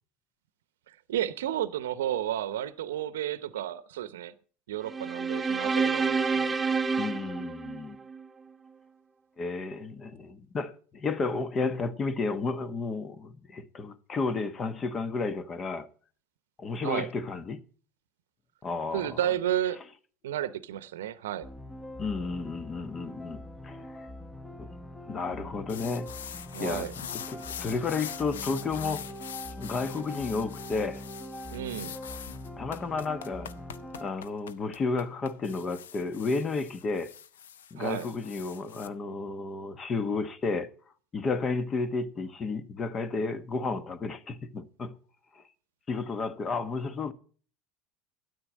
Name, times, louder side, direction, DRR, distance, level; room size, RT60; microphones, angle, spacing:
voice 1, 0.9-4.3 4.7-6.5 16.8-17.1 18.9-19.8 20.2-21.5 26.5-26.9 31.5-31.9 37.8-38.1, right 11 dB, 80° right, 0.7 m, -32 dB
sound 1, 4.9-8.3, right 4 dB, 15° right, 0.7 m, -28 dB
voice 2, 7.0-8.0 9.4-15.9 16.6-17.6 18.6-19.2 22.0-23.8 24.6-24.7 25.1-26.1 26.6-26.9 27.3-29.1 29.6-31.0 32.6-33.5 34.0-37.1 37.7-40.7 41.1-45.0 45.3-45.4 45.9-47.1, left 4 dB, 35° left, 1.3 m, -32 dB
sound 2, 21.4-34.1, left 1 dB, 10° left, 1.1 m, -43 dB
sound 3, 25.7-38.9, left 9 dB, 80° left, 0.7 m, -43 dB
13.0 x 9.3 x 6.3 m
hypercardioid pair, 80°, 0 cm